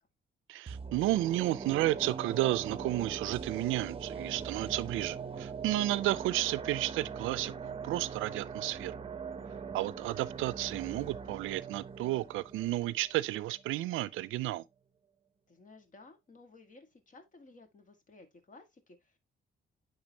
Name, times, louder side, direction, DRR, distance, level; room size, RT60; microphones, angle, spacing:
voice 1, 0.5-8.9 9.7-14.6, right 16 dB, 90° right, 0.5 m, -32 dB
sound 1, 0.7-13.7 14.1-14.2, right 6 dB, 30° right, 0.8 m, -41 dB
voice 2, 15.5-19.2, left 3 dB, 40° left, 2.0 m, -56 dB
9.7 x 4.0 x 2.9 m
cardioid pair, 90°, 20 cm